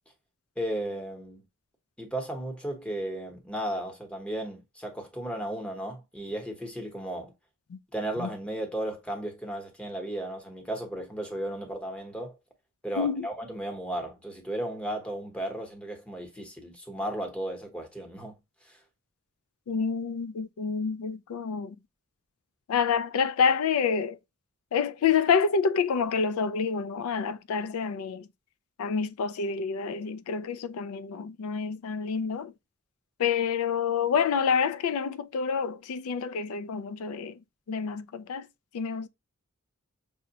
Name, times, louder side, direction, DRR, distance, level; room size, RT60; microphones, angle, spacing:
voice 1, 0.6-1.4 2.0-7.3 7.9-12.4 12.8-18.4 18.6-18.8, right 1 dB, 5° left, 0.9 m, -35 dB
voice 2, 13.0-13.3 19.7-21.8 22.7-24.2 24.7-28.3 28.8-32.5 33.2-37.4 37.7-38.5 38.7-39.1, left 6 dB, 80° left, 0.4 m, -28 dB
5.9 x 2.1 x 2.7 m
head